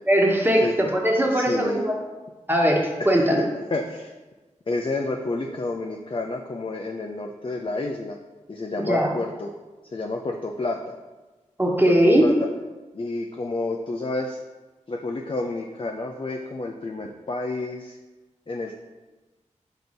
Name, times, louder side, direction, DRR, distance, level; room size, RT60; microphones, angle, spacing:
voice 1, 0.1-2.0 2.5-3.4 8.9-9.1 11.6-12.2, equal, 15° right, -1 dB, 1.4 m, -20 dB
voice 2, 1.3-1.8 3.0-3.1 3.7-4.1 4.7-8.2 8.5-9.5 9.9-10.8 11.9-12.3 12.9-14.4 14.9-18.0 18.5-18.8, left 2 dB, 45° left, 1 dB, 0.6 m, -29 dB
6.0 x 4.1 x 5.2 m, 1.2 s
cardioid pair, 55°, 13 cm